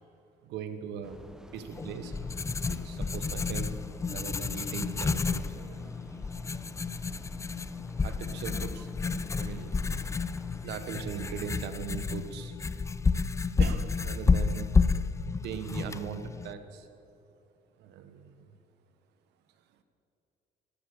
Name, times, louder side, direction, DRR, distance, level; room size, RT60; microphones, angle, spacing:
voice 1, 0.4-1.2 1.5-2.1 2.7-3.7 4.1-5.8 8.0-8.9 9.4-9.8 10.6-12.5 13.6-14.7 15.4-16.9 17.8-18.5, right 7 dB, 85° right, 9 dB, 1.3 m, -39 dB
sound 1, 1.0-10.7, equal, 5° right, 0.8 m, -50 dB
Writing, 1.7-16.5, left 4 dB, 15° left, 0.4 m, -30 dB
14.5 x 12.0 x 6.8 m, 2.9 s
cardioid pair, 110°, 17 cm